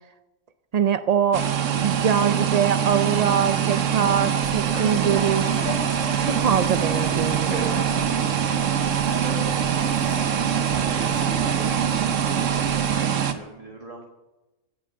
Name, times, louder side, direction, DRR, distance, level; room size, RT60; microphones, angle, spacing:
voice 1, 0.7-1.4 1.8-5.7 6.2-7.5, right 8 dB, 65° right, 11 dB, 0.4 m, -23 dB
sound 1, 1.3-13.3, right 8 dB, 80° right, 1.3 m, -23 dB
sound 2, 4.4-13.1, left 2 dB, 85° left, 2.6 m, -37 dB
voice 2, 8.6-8.9 10.0-14.0, right 2 dB, 30° right, 1 dB, 1.5 m, -42 dB
16.0 x 8.7 x 7.7 m, 1.1 s
omnidirectional pair, 1.3 m